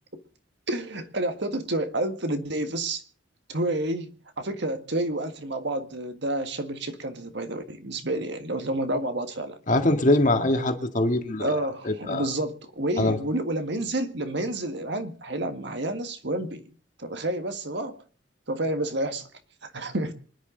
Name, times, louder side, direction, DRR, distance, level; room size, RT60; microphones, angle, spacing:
voice 1, 0.7-3.0 3.5-9.6 11.4-16.6 17.0-18.0 18.5-19.3 19.6-20.1, right 1 dB, 60° right, 1.7 m, -29 dB
voice 2, 9.7-11.5 11.9-12.3 13.0-13.2, left 1 dB, 40° left, 1.9 m, -23 dB
26.0 x 10.5 x 4.0 m
head